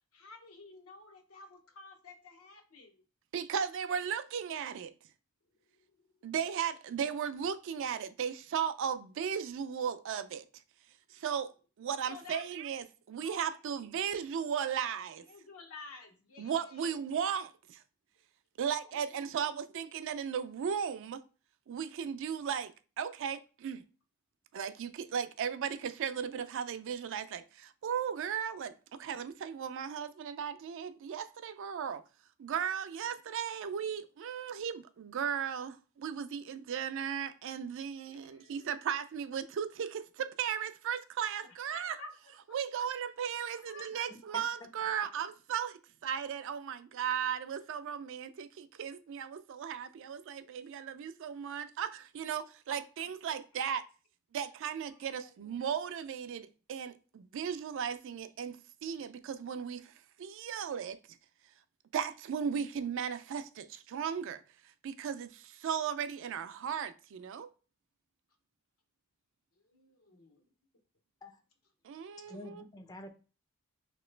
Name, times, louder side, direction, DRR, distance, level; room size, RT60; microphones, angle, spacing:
voice 1, 0.1-3.0 5.9-6.1 12.1-12.4 13.2-13.6 15.3-16.9 18.9-19.3 38.1-38.7 41.4-42.1 43.5-44.1 52.7-52.8 53.3-53.4 54.9-55.3 69.5-70.4, left 3 dB, 80° left, 0.8 m, -52 dB
voice 2, 3.3-4.9 6.2-10.4 11.1-11.5 11.8-15.2 16.4-17.8 18.6-21.2 21.7-23.8 24.5-28.7 29.0-32.0 32.4-42.0 42.5-53.8 54.3-61.0 61.9-64.4 64.8-67.5 71.8-72.6, right 7 dB, 60° right, 0.3 m, -36 dB
voice 3, 44.1-44.4 44.8-44.9 71.2-71.4 72.3-73.1, left 1 dB, 20° left, 0.4 m, -48 dB
3.1 x 2.9 x 3.2 m
head